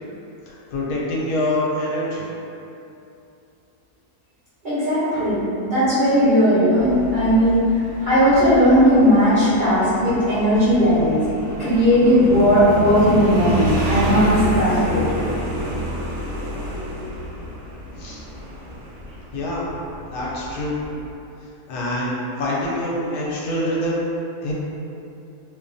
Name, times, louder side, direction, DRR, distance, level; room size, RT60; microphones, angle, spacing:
voice 1, 0.5-2.3 18.0-18.2 19.3-19.7 20.1-20.8 21.7-24.0 24.4-24.5, left 1 dB, 80° left, -5 dB, 1.1 m, -25 dB
voice 2, 4.6-7.6 8.0-11.2 11.6-15.3, equal, 40° right, -16 dB, 0.8 m, -17 dB
Motorcycle, 6.8-21.1, equal, 65° right, 1.1 m, -29 dB
2.8 x 2.1 x 2.5 m, 2.7 s
omnidirectional pair, 1.7 m